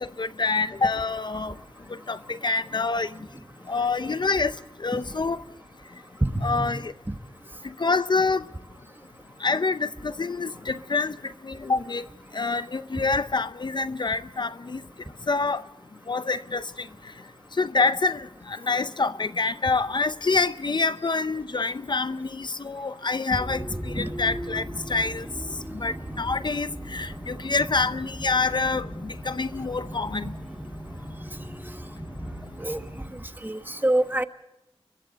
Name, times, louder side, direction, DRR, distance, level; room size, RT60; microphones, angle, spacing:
voice 1, 0.0-1.5 1.9-3.1 3.7-4.5 4.8-5.4 6.4-6.9 7.6-8.5 9.4-12.1 12.3-14.8 15.3-15.6 16.1-16.9 17.6-25.3 25.7-30.3, left 4 dB, 50° left, 0.6 m, -26 dB
voice 2, 6.2-6.7 24.0-24.1 32.6-32.8 33.4-34.2, right 1 dB, 20° right, 1.4 m, -25 dB
sound 1, 23.4-33.1, equal, 5° right, 3.9 m, -37 dB
30.0 x 23.0 x 4.1 m
wide cardioid pair, 90°, 10 cm